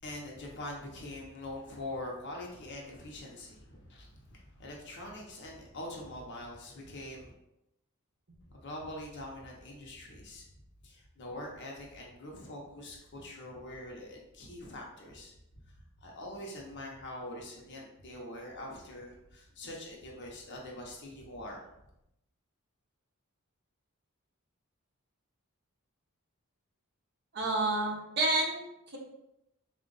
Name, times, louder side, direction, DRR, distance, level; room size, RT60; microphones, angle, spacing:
voice 1, 0.0-7.3 8.5-10.5 10.8-15.3 16.0-21.6, left 1 dB, 55° left, -1 dB, 0.8 m, -44 dB
voice 2, 27.3-29.0, right 2 dB, 50° right, -2 dB, 0.9 m, -30 dB
3.9 x 2.4 x 3.8 m, 0.86 s
head